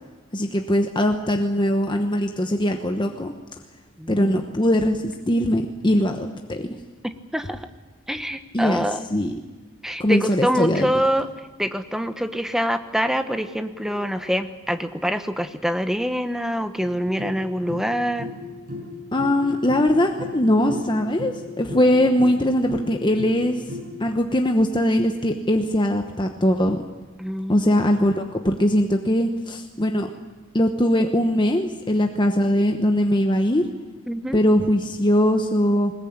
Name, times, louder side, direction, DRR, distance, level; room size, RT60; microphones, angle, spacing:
voice 1, 0.3-3.3 4.1-6.7 8.5-8.8 9.1-9.4 10.0-11.0 19.1-23.6 24.0-26.8 27.5-30.1 30.5-33.7 34.3-35.9, left 1 dB, 20° left, 4 dB, 1.1 m, -21 dB
voice 2, 4.0-4.3 7.0-7.7 8.1-9.0 9.8-11.3 11.6-18.3 27.2-27.8 34.1-34.4, equal, ahead, 9 dB, 1.0 m, -25 dB
sound 1, 16.8-24.1, left 2 dB, 40° right, 6.9 m, -36 dB
20.5 x 20.0 x 8.8 m, 1.3 s
head